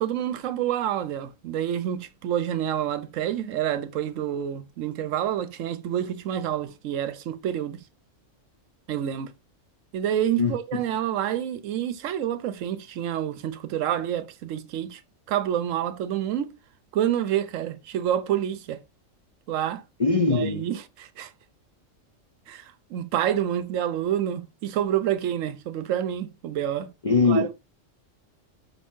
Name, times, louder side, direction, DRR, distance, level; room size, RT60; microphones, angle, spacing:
voice 1, 0.0-7.8 8.9-9.3 9.9-15.0 15.3-16.5 16.9-18.8 19.5-19.8 20.3-21.3 22.5-22.6 22.9-26.9 27.3-27.5, right 10 dB, 85° right, 1.0 m, -28 dB
voice 2, 10.4-10.8 20.0-20.6 27.0-27.5, left 3 dB, 55° left, 0.3 m, -22 dB
5.7 x 3.6 x 2.5 m
omnidirectional pair, 1.3 m